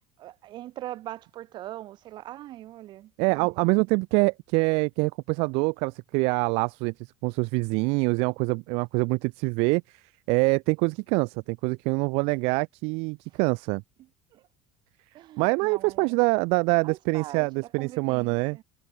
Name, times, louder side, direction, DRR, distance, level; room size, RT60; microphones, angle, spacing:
voice 1, 0.2-3.7 13.3-13.4 14.0-14.5 15.1-16.2 16.8-18.6, right 14 dB, 40° right, 2.1 m, -42 dB
voice 2, 3.2-6.9 7.2-13.8 15.4-18.6, right 30 dB, 60° right, 0.6 m, -25 dB
cardioid pair, 160°, 12 cm